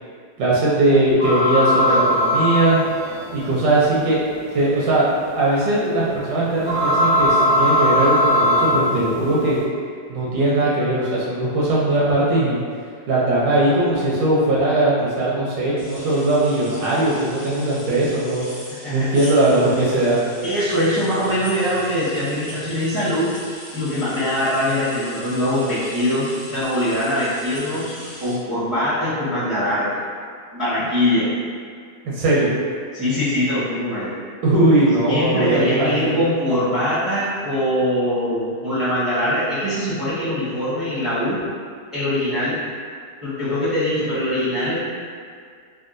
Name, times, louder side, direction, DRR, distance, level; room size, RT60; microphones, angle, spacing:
voice 1, 0.4-2.8 3.3-4.2 4.5-5.1 5.3-9.6 10.1-12.6 13.1-18.4 18.9-20.2 32.0-32.6 34.4-36.2, right 1 dB, 85° right, -6 dB, 1.3 m, -19 dB
sound 1, 1.2-9.6, left 1 dB, 60° left, 1.3 m, -20 dB
sound 2, 15.8-28.3, left 1 dB, 30° left, 0.4 m, -39 dB
voice 2, 20.4-23.3 23.7-30.0 30.5-31.3 32.9-34.1 35.1-41.4 41.9-42.6 43.2-44.8, left 1 dB, 20° right, -15 dB, 0.6 m, -22 dB
3.6 x 2.2 x 2.5 m, 2.1 s
omnidirectional pair, 1.9 m